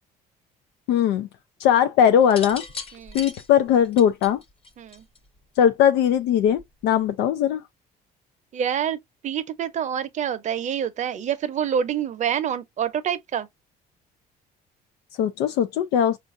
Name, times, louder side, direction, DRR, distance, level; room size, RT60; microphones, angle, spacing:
voice 1, 0.9-1.3 1.6-2.6 3.1-4.4 5.6-7.6 15.2-16.2, left 9 dB, 90° left, 0.4 m, -19 dB
sound 1, 2.2-5.4 6.5-6.8, left 4 dB, 35° left, 0.9 m, -38 dB
voice 2, 8.5-13.5, right 8 dB, 45° right, 0.6 m, -27 dB
4.5 x 2.5 x 2.5 m
cardioid pair, 110°, 17 cm